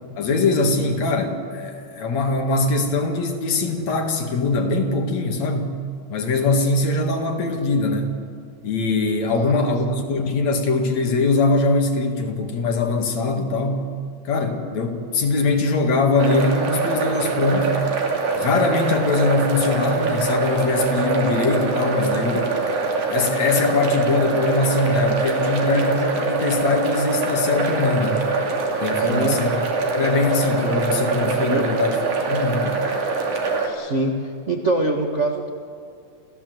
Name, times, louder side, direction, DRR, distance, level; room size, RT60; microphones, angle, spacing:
voice 1, 0.2-5.7 6.1-8.1 8.6-13.9 14.2-17.7 18.3-22.5 23.1-28.2 28.8-29.6 29.9-32.0 32.3-32.7, left 3 dB, 60° left, 4 dB, 3.1 m, -22 dB
sound 1, 16.2-33.7, right 3 dB, 70° right, 4.0 m, -23 dB
voice 2, 29.0-29.4 31.5-31.6 33.6-35.5, right 2 dB, 40° right, 3 dB, 1.0 m, -24 dB
28.0 x 16.0 x 7.9 m, 2.3 s
omnidirectional pair, 3.6 m